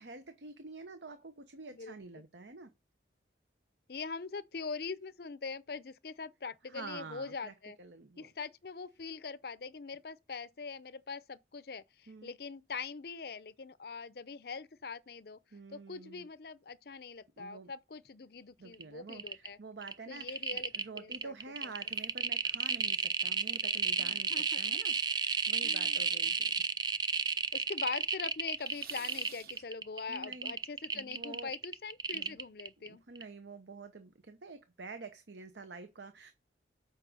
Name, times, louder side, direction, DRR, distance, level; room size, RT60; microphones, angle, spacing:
voice 1, 0.0-2.7 6.7-8.3 12.1-12.3 15.5-16.3 17.4-17.7 18.6-26.5 30.1-30.6 30.9-31.5 32.1-32.4 32.8-36.3, right 3 dB, 75° right, 0.9 m, -48 dB
voice 2, 1.7-2.2 3.9-7.8 8.2-15.4 15.7-19.6 20.1-21.3 24.0-24.6 25.6-26.0 27.5-33.0, left 4 dB, 55° left, 0.6 m, -43 dB
sound 1, 18.7-18.8 19.1-19.5 19.8-32.9 33.2-33.3, right 5 dB, 20° right, 0.4 m, -33 dB
sound 2, 20.3-20.8 21.7-22.2 22.7-22.9 23.4-24.1 24.5-26.5 27.0-28.1 28.4-29.9, right 7 dB, 55° right, 1.3 m, -57 dB
7.4 x 4.9 x 6.5 m
head